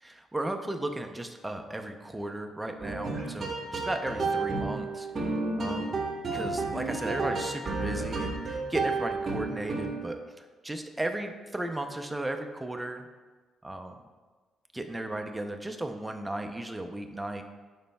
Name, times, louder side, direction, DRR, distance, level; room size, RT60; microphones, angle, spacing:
voice 1, 0.0-5.1 5.6-6.0 6.3-13.1 13.6-13.9 14.7-17.4, right 1 dB, 10° right, 5 dB, 0.6 m, -35 dB
sound 1, 2.8-10.1, right 3 dB, 35° right, 1.4 m, -31 dB
11.5 x 5.1 x 2.3 m, 1.4 s
cardioid pair, 90°, 0 cm